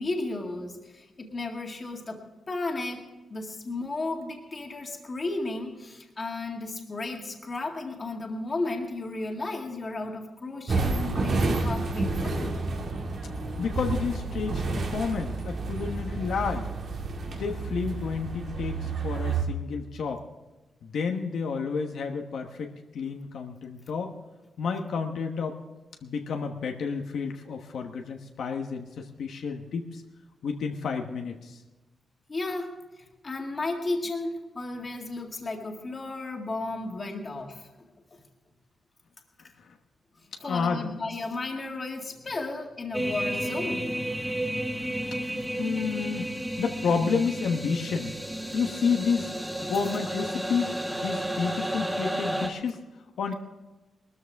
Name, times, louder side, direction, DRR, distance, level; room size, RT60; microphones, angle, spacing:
voice 1, 0.0-12.6 32.3-37.7 38.1-38.2 40.4-44.0, left 2 dB, 30° left, 2 dB, 2.0 m, -34 dB
sound 1, 10.7-19.4, right 3 dB, 55° right, 2.2 m, -30 dB
voice 2, 13.6-16.7 17.3-20.2 20.8-24.1 24.6-25.6 26.0-30.0 30.4-31.6 40.4-40.9 45.6-46.3 46.6-48.2 48.5-49.3 49.6-52.8 53.2-53.3, left 5 dB, 80° left, 3 dB, 1.1 m, -30 dB
sound 2, 42.9-52.5, right 1 dB, 5° right, 1.0 m, -32 dB
20.5 x 13.5 x 3.5 m, 1.1 s
wide cardioid pair, 160°, 0 cm